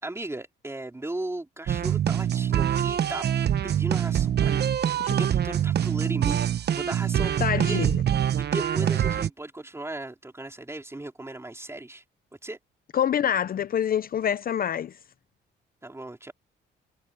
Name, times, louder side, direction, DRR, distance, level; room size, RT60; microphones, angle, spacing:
voice 1, 0.0-3.3 3.6-4.7 5.2-7.9 8.4-12.0 12.4-12.6 15.8-16.3, right 2 dB, 15° right, 4.0 m, -36 dB
sound 1, 1.7-9.3, right 9 dB, 55° right, 1.0 m, -24 dB
voice 2, 7.4-7.9 12.9-14.9, left 9 dB, 45° left, 0.6 m, -26 dB
cardioid pair, 90°, 20 cm